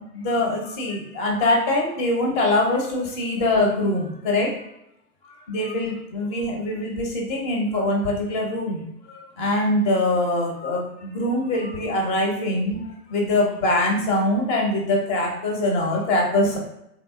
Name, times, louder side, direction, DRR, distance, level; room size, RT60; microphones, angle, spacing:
voice 1, 0.1-4.5 5.3-16.6, left 1 dB, 15° left, 0 dB, 0.4 m, -23 dB
3.5 x 2.8 x 2.4 m, 0.80 s
figure-of-eight pair, 105°, 47 cm